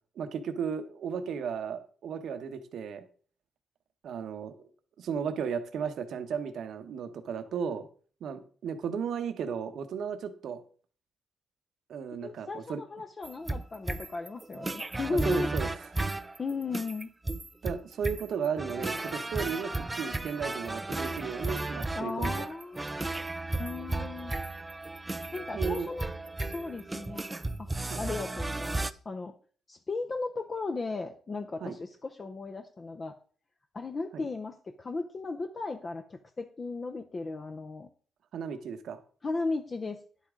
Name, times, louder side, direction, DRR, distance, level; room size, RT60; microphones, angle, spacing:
voice 1, 0.1-3.1 4.0-4.7 5.0-7.9 8.2-10.6 11.9-12.8 15.1-15.9 17.6-22.5 25.5-25.9 27.8-28.1 31.6-31.8 34.1-34.3 38.3-39.0, right 6 dB, 70° right, 8 dB, 1.0 m, -35 dB
voice 2, 12.2-15.5 16.4-17.1 22.0-23.2 23.6-24.4 25.3-26.1 26.5-27.2 27.6-27.7 28.0-29.3 29.7-33.1 33.7-37.9 39.2-40.0, left 3 dB, 30° left, 6 dB, 0.6 m, -36 dB
sound 1, 13.2-28.9, right 2 dB, 15° right, 0.4 m, -34 dB
10.5 x 8.3 x 3.7 m, 0.42 s
cardioid pair, 140°, 0 cm